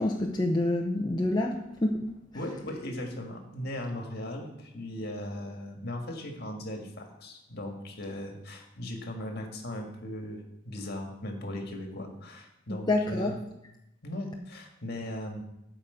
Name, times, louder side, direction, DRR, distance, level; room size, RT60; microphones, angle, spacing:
voice 1, 0.0-2.1 12.9-13.4, left 1 dB, 20° left, 0 dB, 0.7 m, -27 dB
voice 2, 2.3-13.3 14.0-15.4, left 1 dB, 55° left, 2 dB, 1.8 m, -38 dB
8.8 x 5.1 x 7.8 m, 0.85 s
head